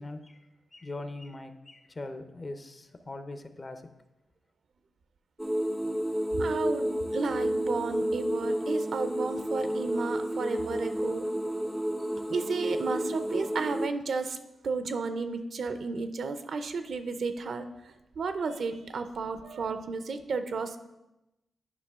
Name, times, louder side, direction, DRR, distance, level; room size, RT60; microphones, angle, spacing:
voice 1, 0.0-3.8, left 2 dB, 35° left, 0.7 m, -41 dB
sound 1, 5.4-13.9, equal, 5° right, 0.4 m, -31 dB
voice 2, 6.4-11.3 12.3-14.4 14.6-20.8, right 4 dB, 70° right, 0.5 m, -33 dB
9.6 x 5.3 x 3.6 m
cardioid pair, 70°, 0 cm